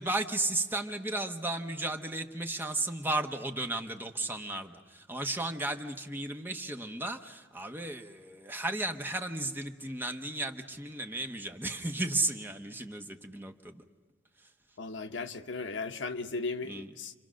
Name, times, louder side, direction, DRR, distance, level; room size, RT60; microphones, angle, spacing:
voice 1, 0.0-13.8 16.6-16.9, right 2 dB, 10° right, 1.0 m, -34 dB
voice 2, 14.8-17.1, left 3 dB, 75° left, 1.0 m, -36 dB
30.0 x 24.5 x 6.4 m
head